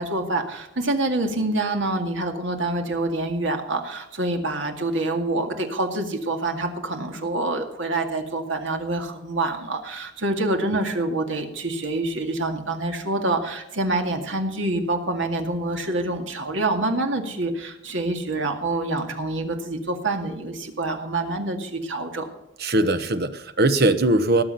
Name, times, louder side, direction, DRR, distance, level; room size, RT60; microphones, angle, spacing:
voice 1, 0.0-22.3, right 2 dB, 70° right, 4 dB, 2.1 m, -26 dB
voice 2, 22.6-24.4, right 2 dB, 55° right, 10 dB, 1.1 m, -20 dB
18.5 x 7.3 x 5.7 m, 0.89 s
head